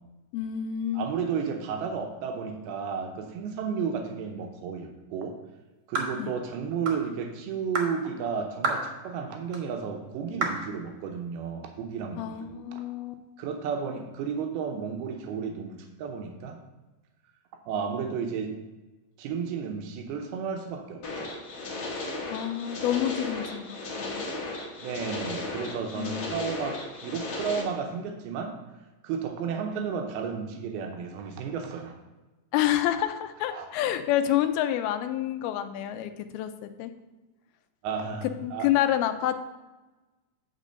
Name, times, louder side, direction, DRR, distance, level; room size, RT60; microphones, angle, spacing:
voice 1, 0.3-1.1 6.2-6.3 12.2-13.2 22.3-24.3 26.0-26.3 32.5-36.9 38.4-39.4, left 12 dB, 90° left, 9 dB, 2.5 m, -28 dB
voice 2, 0.9-5.4 5.9-12.8 13.4-16.6 17.7-18.6 19.2-21.3 24.8-28.6 29.0-31.9 33.5-33.7 37.8-38.7, right 6 dB, 90° right, 3 dB, 2.7 m, -33 dB
sound 1, 5.9-6.2 6.9-7.0 7.7-7.9 8.6-8.9 9.5-9.6 10.4-10.6, right 3 dB, 60° right, 1.5 m, -29 dB
sound 2, 21.0-27.6, left 2 dB, 55° left, 2.0 m, -35 dB
9.4 x 3.7 x 6.5 m, 1.1 s
omnidirectional pair, 4.3 m